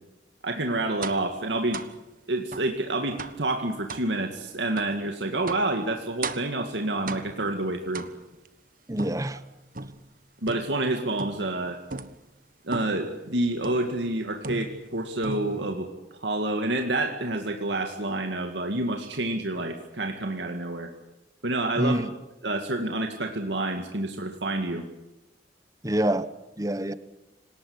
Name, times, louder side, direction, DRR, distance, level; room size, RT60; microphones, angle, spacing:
voice 1, 0.4-1.8 2.3-8.1 10.4-11.8 12.6-20.9 21.4-22.0 22.4-24.9, right 2 dB, 75° right, 4 dB, 2.1 m, -28 dB
sound 1, 1.0-1.3 1.7-2.0 2.5-2.7 3.2-3.5 3.9-4.1 4.8-5.0 5.5-5.7 6.2-6.6 7.1-7.5 7.9-8.5 9.0-10.1 10.5-10.9 11.2-11.5 11.9-12.2 12.7-13.1 13.6-14.0 14.4-14.9 15.2-15.7, right 3 dB, 50° right, 1.3 m, -37 dB
voice 2, 8.9-9.4 21.8-22.1 25.8-26.3 26.6-26.9, right 1 dB, 20° right, 14 dB, 1.0 m, -26 dB
27.0 x 19.0 x 9.7 m, 0.99 s
head